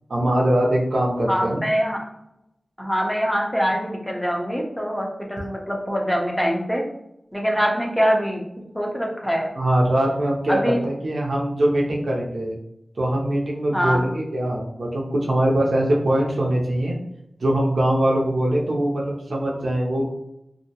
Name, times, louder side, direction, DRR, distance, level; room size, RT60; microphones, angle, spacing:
voice 1, 0.1-1.6 9.6-12.5 13.0-17.0 17.4-20.3, right 1 dB, 75° right, -2 dB, 0.5 m, -22 dB
voice 2, 1.3-2.0 2.8-6.8 7.3-8.4 8.7-9.5 10.5-10.8 13.7-14.0, equal, 5° left, 0 dB, 0.6 m, -23 dB
2.6 x 2.0 x 2.7 m, 0.82 s
wide cardioid pair, 80°, 0 cm